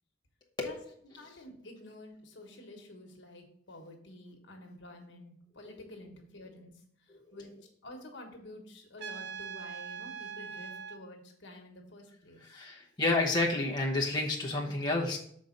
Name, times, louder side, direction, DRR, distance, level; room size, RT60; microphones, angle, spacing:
voice 1, 1.2-6.7 7.0-7.5 7.8-12.4, left 1 dB, 70° left, 2 dB, 1.4 m, -49 dB
Trumpet, 9.0-11.0, right 7 dB, 65° right, 0.4 m, -42 dB
voice 2, 12.4-15.2, left 2 dB, 25° left, -2 dB, 0.9 m, -30 dB
6.4 x 4.1 x 5.1 m, 0.64 s
head